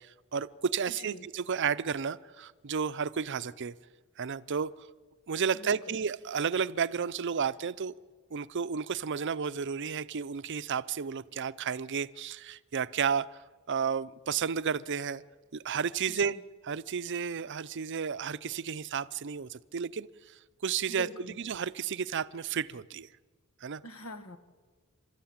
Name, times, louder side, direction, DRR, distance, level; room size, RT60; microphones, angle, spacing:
voice 1, 0.0-3.7 4.2-4.7 5.3-7.9 8.3-13.3 13.7-15.2 15.5-16.4 16.6-21.1 21.4-23.1 23.6-23.8, right 6 dB, 55° right, 15 dB, 0.6 m, -32 dB
voice 2, 1.0-1.3 5.5-6.0 16.1-16.4 20.9-21.4 23.8-24.4, left 1 dB, 80° left, 8 dB, 1.7 m, -43 dB
28.5 x 13.0 x 8.8 m, 1.4 s
head